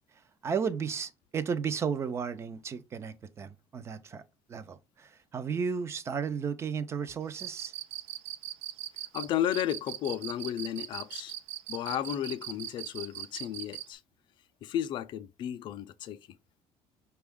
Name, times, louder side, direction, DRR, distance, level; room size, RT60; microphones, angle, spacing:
voice 1, 0.4-4.2 4.5-7.7, right 6 dB, 25° right, 0.4 m, -34 dB
Cricket, 7.3-13.9, right 14 dB, 90° right, 0.5 m, -39 dB
voice 2, 9.1-11.3 11.7-14.0 14.6-16.2, left 11 dB, 45° left, 0.4 m, -33 dB
5.2 x 2.3 x 3.5 m
cardioid pair, 165°, 11 cm